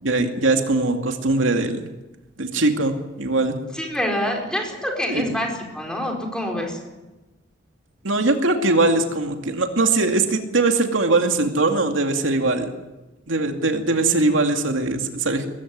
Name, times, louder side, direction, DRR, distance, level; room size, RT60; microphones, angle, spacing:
voice 1, 0.0-1.8 2.4-3.6 5.1-5.3 8.0-12.7 13.3-15.5, right 2 dB, 90° right, 5 dB, 2.4 m, -21 dB
voice 2, 3.7-6.8, equal, 5° left, 1 dB, 4.7 m, -26 dB
20.5 x 15.5 x 9.5 m, 1.1 s
head